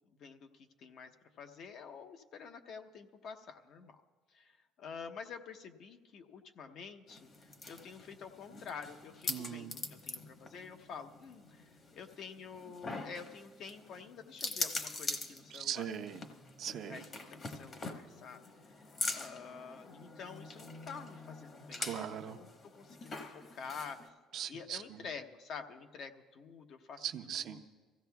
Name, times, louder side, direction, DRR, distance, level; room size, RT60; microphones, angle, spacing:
voice 1, 0.1-1.1 1.4-4.0 4.3-4.5 4.8-7.3 7.7-15.9 16.9-18.4 19.1-22.5 22.7-24.1 24.5-27.0, left 6 dB, 55° left, 6 dB, 0.9 m, -48 dB
sound 1, 7.1-24.1, left 3 dB, 35° left, 1.1 m, -44 dB
voice 2, 9.3-9.8 15.5-16.2 16.6-17.0 21.8-22.4 24.3-25.1 27.0-27.6, right 9 dB, 55° right, 6 dB, 0.7 m, -40 dB
25.5 x 15.5 x 2.3 m, 1.4 s
cardioid pair, 115°, 0 cm